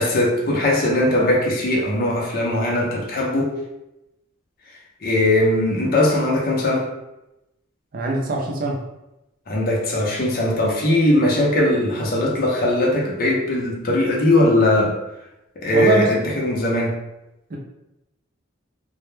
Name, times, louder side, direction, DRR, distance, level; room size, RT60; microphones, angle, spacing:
voice 1, 0.0-3.5 5.0-6.9 9.5-15.0 15.6-16.9, left 1 dB, 50° left, -2 dB, 0.5 m, -19 dB
voice 2, 7.9-8.8 15.7-16.1 17.5-17.6, right 2 dB, 45° right, -1 dB, 0.4 m, -22 dB
2.1 x 2.0 x 3.1 m, 0.91 s
head